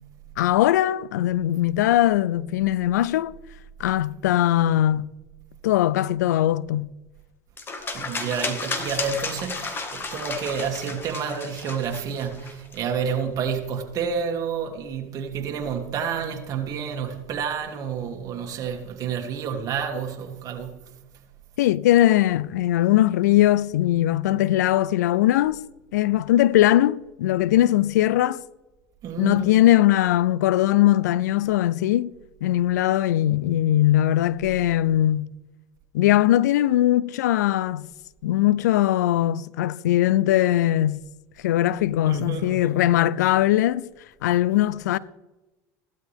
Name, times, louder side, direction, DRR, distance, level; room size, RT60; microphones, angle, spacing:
voice 1, 0.4-3.3 3.8-5.1 5.6-6.9 21.6-25.6 25.9-28.4 29.2-32.1 32.4-35.3 35.9-37.9 38.2-41.0 41.4-43.9 44.2-45.0, left 13 dB, 90° left, 0.4 m, -20 dB
sound 1, 7.6-12.8, left 3 dB, 25° left, 1.8 m, -33 dB
voice 2, 7.9-20.9 29.0-29.5 42.0-42.7, right 6 dB, 40° right, 2.6 m, -29 dB
16.0 x 12.0 x 3.5 m
supercardioid pair, 105°, 9 cm